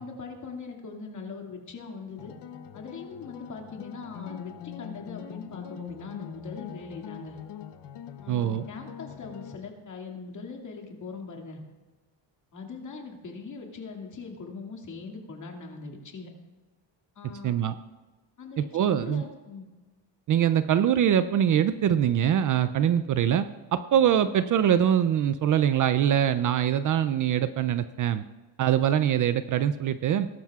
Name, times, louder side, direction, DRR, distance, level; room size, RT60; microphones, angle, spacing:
voice 1, 0.0-2.3 2.7-7.4 8.2-11.6 12.5-16.3 17.2-17.6 18.4-19.7, left 4 dB, 40° left, 1 dB, 2.2 m, -41 dB
sound 1, 2.2-9.6, left 10 dB, 65° left, 0.8 m, -43 dB
voice 2, 8.3-8.6 17.4-17.7 18.6-19.2 20.3-28.2 28.6-30.3, right 10 dB, 45° right, 12 dB, 0.4 m, -23 dB
20.0 x 12.0 x 2.4 m, 1.2 s
cardioid pair, 135°, 46 cm